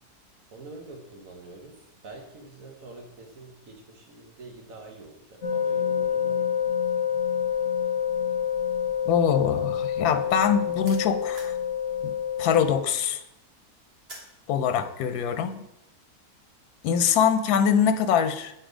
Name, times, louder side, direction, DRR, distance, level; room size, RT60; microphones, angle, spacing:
voice 1, 0.5-6.6, right 2 dB, 65° right, 2 dB, 1.3 m, -46 dB
sound 1, 5.4-12.8, left 8 dB, 55° left, 1.1 m, -27 dB
sound 2, 9.0-11.6 12.0-14.4, right 1 dB, 40° right, 1.9 m, -48 dB
voice 2, 9.1-11.5 12.0-12.1 12.4-13.2 14.5-15.6 16.8-18.5, left 7 dB, 90° left, 11 dB, 1.1 m, -23 dB
8.0 x 4.2 x 5.0 m, 0.84 s
omnidirectional pair, 1.6 m